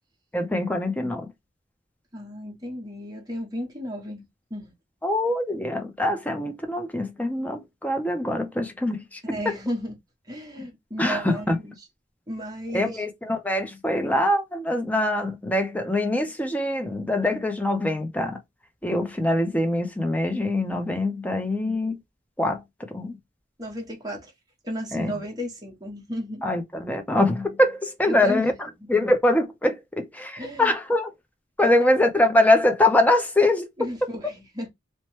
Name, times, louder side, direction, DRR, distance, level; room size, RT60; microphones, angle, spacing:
voice 1, 0.3-1.3 5.0-9.6 10.6-10.7 11.0-11.6 12.7-18.4 18.8-22.0 22.4-23.2 24.9-25.1 26.4-28.5 28.9-31.1 31.6-33.9, left 1 dB, 10° left, 0.5 m, -23 dB
voice 2, 2.1-4.7 9.2-9.9 10.3-11.7 12.3-13.0 23.6-24.3 24.6-26.4 28.1-28.5 30.4-30.7 31.6-31.9 33.8-34.7, equal, 20° right, 0.9 m, -34 dB
2.9 x 2.1 x 3.0 m
head